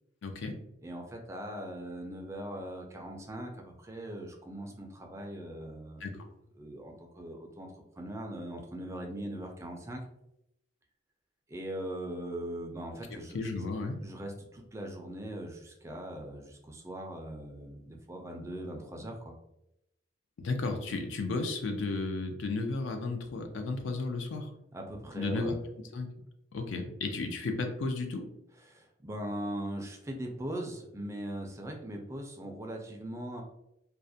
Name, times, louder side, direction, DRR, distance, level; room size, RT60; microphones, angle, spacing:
voice 1, 0.2-0.6 6.0-6.1 13.3-14.0 20.4-24.5 25.1-25.5 25.9-26.1 26.5-28.3, left 3 dB, 80° left, 5 dB, 0.4 m, -33 dB
voice 2, 0.8-6.1 6.6-7.7 8.0-10.0 11.5-13.6 14.0-19.3 24.7-25.6 28.6-33.4, right 1 dB, 15° right, 1 dB, 0.3 m, -40 dB
2.3 x 2.0 x 2.6 m, 0.84 s
head